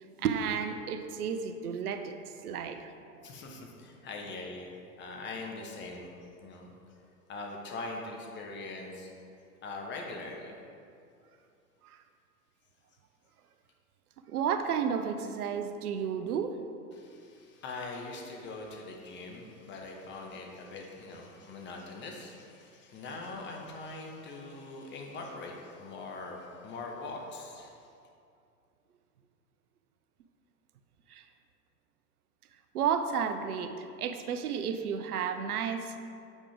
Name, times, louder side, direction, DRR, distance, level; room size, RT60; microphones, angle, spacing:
voice 1, 0.2-2.1 2.4-2.9 3.2-3.3 11.8-12.0 14.3-16.6 31.1-31.2 32.7-36.0, right 7 dB, 70° right, 8 dB, 0.7 m, -32 dB
voice 2, 3.2-6.1 6.4-6.7 7.3-9.1 9.6-10.5 16.9-27.7, left 3 dB, 25° left, 1 dB, 1.1 m, -42 dB
8.2 x 5.0 x 3.5 m, 2.5 s
figure-of-eight pair, 100°, 46 cm